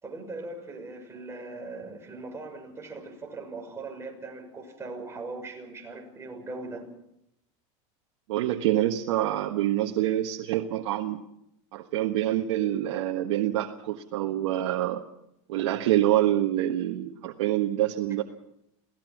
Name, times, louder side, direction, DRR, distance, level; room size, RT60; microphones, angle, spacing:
voice 1, 0.0-6.8, right 3 dB, 15° right, 2 dB, 6.2 m, -40 dB
voice 2, 8.3-11.2 11.7-15.0 15.5-18.2, right 13 dB, 85° right, 3 dB, 1.4 m, -26 dB
28.0 x 18.0 x 6.1 m, 0.80 s
supercardioid pair, 125°, 16 cm